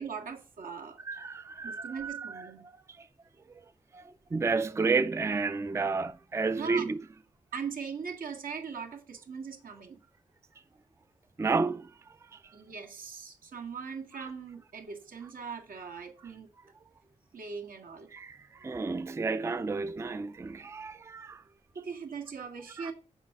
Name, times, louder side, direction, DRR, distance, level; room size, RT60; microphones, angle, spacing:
voice 1, 0.0-1.0 1.6-2.6 6.5-6.9 7.5-10.0 12.5-16.5 17.3-18.1 21.8-22.9, right 6 dB, 85° right, 1.7 m, -40 dB
voice 2, 1.1-3.1 3.6-3.7 3.9-7.0 11.4-11.9 12.2-12.6 18.1-21.4 22.8-22.9, right 4 dB, 20° right, 0.3 m, -32 dB
7.3 x 4.8 x 6.6 m
wide cardioid pair, 135°, 14 cm